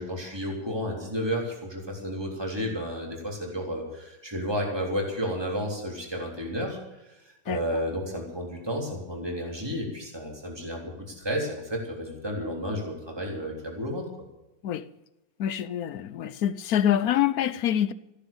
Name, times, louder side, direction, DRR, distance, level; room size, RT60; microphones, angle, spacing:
voice 1, 0.0-7.0 7.5-14.1, equal, 15° right, 3.7 m, -32 dB
voice 2, 15.4-17.9, left 10 dB, 65° left, 1.0 m, -25 dB
15.5 x 10.5 x 7.0 m
omnidirectional pair, 2.0 m